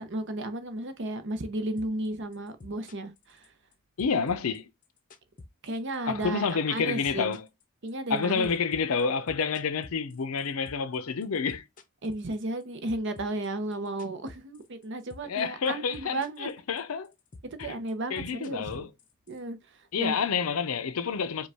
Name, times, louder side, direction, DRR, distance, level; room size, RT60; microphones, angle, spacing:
voice 1, 0.0-3.5 5.6-7.4 7.8-8.5 12.0-16.5 17.6-18.9 19.3-19.6 20.0-20.1, right 1 dB, 55° right, 0.7 m, -34 dB
sound 1, 1.8-2.1 2.3-3.7 4.0-6.0 6.2-6.5 6.8-11.0 11.2-12.6 12.9-14.8 15.1-15.4 15.7-16.5 16.8-19.4, left 2 dB, 40° left, 0.6 m, -48 dB
voice 2, 4.0-4.7 6.1-7.5 8.1-11.6 15.2-17.1 17.6-17.7 18.1-18.9 19.9-21.5, left 5 dB, 80° left, 0.6 m, -29 dB
5.2 x 2.4 x 3.4 m
head